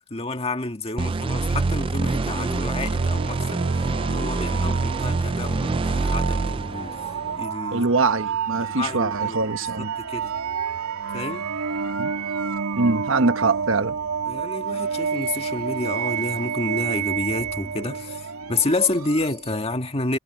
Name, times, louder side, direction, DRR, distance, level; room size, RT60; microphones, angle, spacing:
voice 1, 0.1-3.6 4.1-6.9 7.4-7.9 8.6-9.5 9.8-10.3 11.1-11.5 14.3-18.2 18.5-20.2, left 2 dB, 25° left, 1.8 m, -29 dB
sound 1, 1.0-7.4, right 3 dB, 25° right, 0.3 m, -25 dB
sound 2, 2.1-19.6, right 6 dB, 90° right, 2.9 m, -30 dB
voice 2, 7.7-9.9 12.0-12.1 12.8-13.9, right 3 dB, 60° right, 1.2 m, -23 dB
head